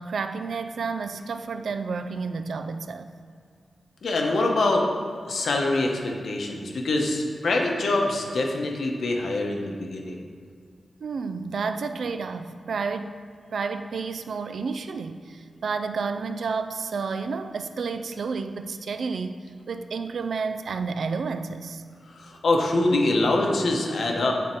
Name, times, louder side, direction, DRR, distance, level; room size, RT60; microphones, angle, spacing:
voice 1, 0.0-3.1 11.0-13.2 13.5-19.4 19.7-21.8, right 4 dB, 65° right, 9 dB, 0.3 m, -30 dB
voice 2, 4.0-4.8 5.3-10.2 22.1-24.3, left 2 dB, 65° left, 1 dB, 0.9 m, -24 dB
9.2 x 3.5 x 4.4 m, 2.2 s
wide cardioid pair, 160°, 0 cm